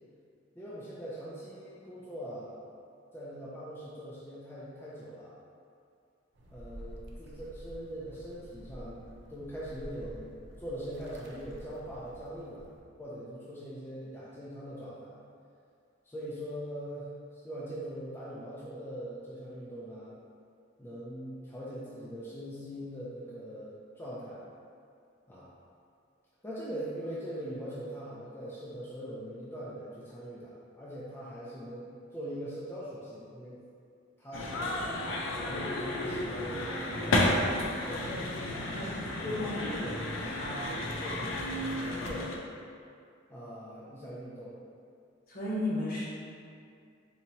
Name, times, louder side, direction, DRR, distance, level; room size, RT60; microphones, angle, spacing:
voice 1, 0.6-2.6 3.1-5.4 6.5-12.7 13.0-15.2 16.0-20.1 20.8-24.4 25.3-25.5 26.4-33.6 34.2-34.9 35.4-38.8 39.3-40.3 40.7-42.5 43.3-44.6, equal, 10° left, -9 dB, 0.4 m, -42 dB
sound 1, 6.3-12.8, equal, 60° right, 0.5 m, -49 dB
sound 2, 34.3-42.4, left 1 dB, 75° left, 0.4 m, -32 dB
voice 2, 38.7-39.8 40.2-40.7 41.1-41.2 45.3-46.0, left 1 dB, 50° left, -7 dB, 1.0 m, -35 dB
4.1 x 2.7 x 2.8 m, 2.4 s
head